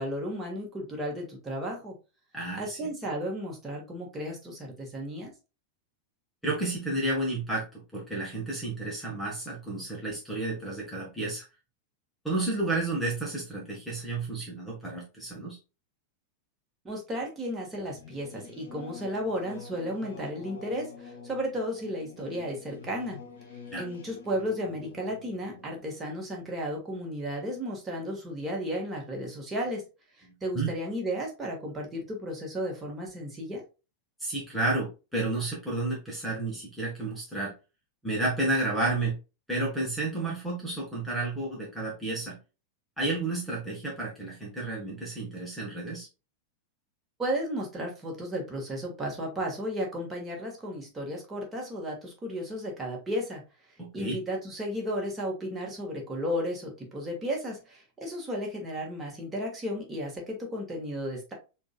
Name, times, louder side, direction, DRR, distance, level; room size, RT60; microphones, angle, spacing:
voice 1, 0.0-1.9 2.5-5.3 16.8-23.2 23.8-29.8 30.2-33.6 47.2-53.4 53.9-61.3, equal, 15° right, -1 dB, 1.6 m, -34 dB
voice 2, 2.3-2.9 6.4-11.4 12.2-15.6 23.7-23.8 30.5-30.7 34.2-37.5 38.0-39.2 39.5-42.4 43.0-46.1 53.8-54.2, right 2 dB, ahead, -3 dB, 1.3 m, -31 dB
Singing / Musical instrument, 17.7-27.8, left 4 dB, 60° left, 0.9 m, -48 dB
6.8 x 2.7 x 2.3 m, 0.30 s
figure-of-eight pair, 90°, 0 cm